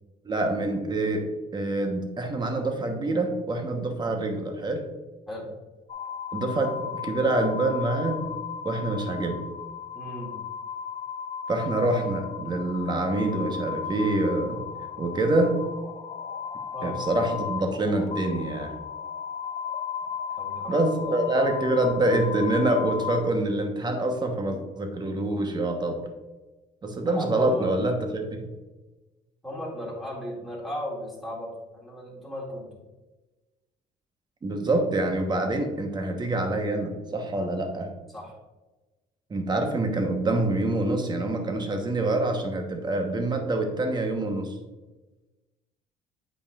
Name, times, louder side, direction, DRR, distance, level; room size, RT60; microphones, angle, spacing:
voice 1, 0.2-1.3 1.5-4.8 6.3-8.2 8.6-9.4 11.5-14.6 15.0-15.6 16.8-18.7 20.7-26.1 26.8-28.5 34.4-37.9 39.3-44.5, right 2 dB, 25° right, 5 dB, 1.0 m, -26 dB
sound 1, 5.9-23.2, left 7 dB, 40° left, 0.5 m, -35 dB
voice 2, 9.9-10.3 16.7-17.0 20.4-21.2 27.1-27.7 29.4-32.7 38.1-38.3, equal, ahead, -5 dB, 2.1 m, -36 dB
8.2 x 5.2 x 2.4 m, 1.1 s
cardioid pair, 110°, 17 cm